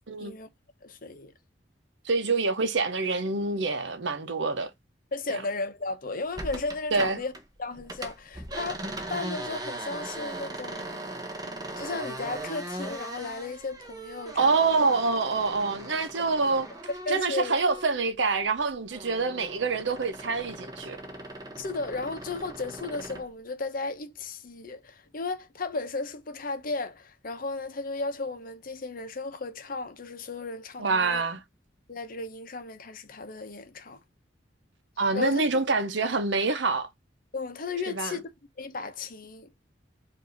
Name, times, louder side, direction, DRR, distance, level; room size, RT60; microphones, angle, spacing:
voice 1, 0.8-1.3 5.1-7.3 7.6-11.0 11.4-14.6 17.1-17.5 21.6-31.2 31.9-34.0 35.1-35.4 37.3-38.3 38.6-39.5, left 3 dB, 50° left, 0.8 m, -35 dB
voice 2, 2.0-4.7 5.3-5.4 6.9-7.2 14.4-16.7 17.1-21.0 30.8-31.4 35.0-36.9 37.9-38.2, right 4 dB, 75° right, 0.8 m, -26 dB
sound 1, 6.4-7.4 7.7-18.1 18.4-23.3, right 1 dB, 20° right, 0.9 m, -39 dB
4.9 x 2.7 x 3.9 m
head